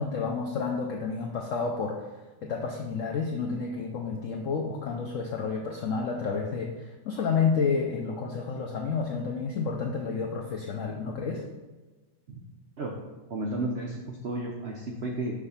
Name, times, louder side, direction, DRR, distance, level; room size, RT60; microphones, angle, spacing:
voice 1, 0.0-2.1 2.4-11.4, left 5 dB, 80° left, 0 dB, 0.7 m, -30 dB
voice 2, 13.3-15.3, right 2 dB, 75° right, 0 dB, 0.6 m, -33 dB
6.0 x 3.4 x 5.5 m, 1.2 s
omnidirectional pair, 2.0 m